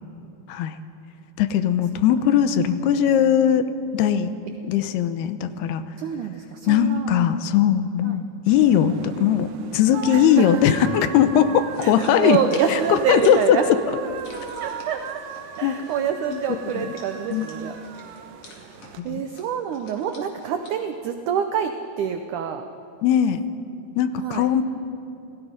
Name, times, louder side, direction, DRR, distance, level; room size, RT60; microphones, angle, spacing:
voice 1, 1.4-3.7 3.9-4.3 4.6-5.8 6.7-12.4 12.7-13.8 15.6-15.8 16.3-16.4 16.8-16.9 17.3-17.5 19.0-19.2 23.0-23.4 24.0-24.6, left 9 dB, 80° left, 11 dB, 2.8 m, -19 dB
voice 2, 6.0-7.1 8.0-8.1 10.1-10.6 11.8-13.7 14.6-15.0 15.6-17.7 19.0-22.7 24.2-24.5, right 8 dB, 90° right, 6 dB, 1.7 m, -26 dB
sound 1, 8.5-19.0, right 8 dB, 75° right, 2.5 m, -38 dB
sound 2, 11.7-20.7, left 2 dB, 40° left, 3.4 m, -47 dB
28.0 x 18.5 x 5.1 m, 2.8 s
omnidirectional pair, 4.7 m